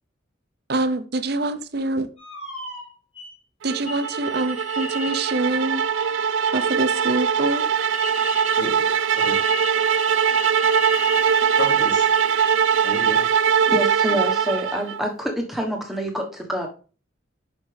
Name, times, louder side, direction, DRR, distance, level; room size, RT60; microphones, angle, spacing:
voice 1, 0.7-2.1 3.6-5.9 6.5-7.6, right 2 dB, 55° right, 11 dB, 0.7 m, -25 dB
sound 1, 2.2-3.3 3.9-8.7 9.1-13.1, left 4 dB, 35° left, 3.1 m, -37 dB
sound 2, 3.7-15.0, right 7 dB, 80° right, 0.4 m, -21 dB
voice 2, 8.5-9.5 11.6-12.1 12.8-13.3, left 2 dB, 70° left, -2 dB, 3.2 m, -32 dB
voice 3, 13.7-16.7, equal, ahead, 1 dB, 1.3 m, -26 dB
7.3 x 5.9 x 3.4 m, 0.36 s
head